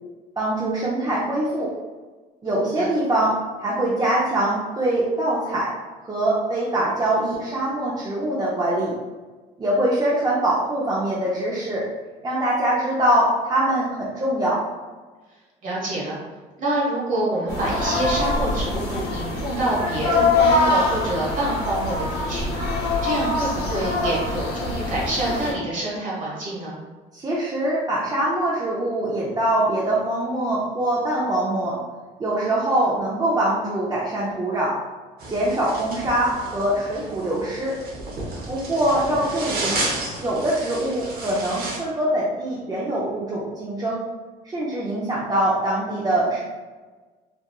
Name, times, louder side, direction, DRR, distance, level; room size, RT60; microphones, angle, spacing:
voice 1, 0.4-1.7 2.4-5.7 6.0-9.0 9.6-11.9 12.2-14.6 27.1-31.8 32.2-34.8 35.3-37.8 38.5-39.8 40.2-44.0 44.4-46.4, right 1 dB, 20° right, -6 dB, 0.4 m, -23 dB
voice 2, 15.6-16.2 16.6-22.5 23.0-26.8, right 1 dB, 50° right, -5 dB, 1.1 m, -26 dB
sound 1, 17.5-25.5, left 2 dB, 75° left, 0.7 m, -24 dB
sound 2, 35.2-41.8, right 2 dB, 70° right, 0.7 m, -32 dB
2.9 x 2.2 x 2.2 m, 1.3 s
cardioid pair, 110°, 17 cm